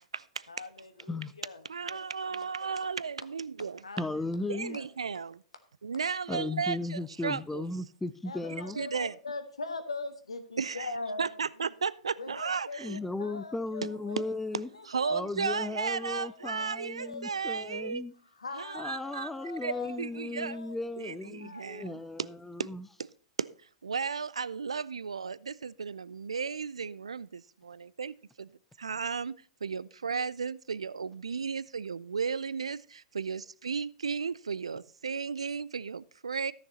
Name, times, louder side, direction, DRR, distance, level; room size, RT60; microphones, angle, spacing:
voice 1, 0.5-2.0 2.3-2.5 3.8-4.9 8.2-11.4 12.1-14.3 14.7-17.5 18.2-20.8 21.4-22.2, left 3 dB, 80° left, 1.4 m, -42 dB
voice 2, 1.7-3.8 4.5-5.4 5.8-7.7 8.8-9.1 10.6-10.9 11.2-13.0 14.8-18.0 18.6-19.3 19.6-19.7 20.0-20.6 21.0-22.3 22.6-22.7 23.4-23.5 23.8-28.5 28.8-36.5, right 5 dB, 80° right, 0.4 m, -34 dB
voice 3, 4.0-4.8 6.3-8.8 12.8-14.7 15.1-18.1 18.8-22.9, left 2 dB, 5° left, 0.5 m, -36 dB
14.0 x 6.5 x 4.2 m
figure-of-eight pair, 100°, 3 cm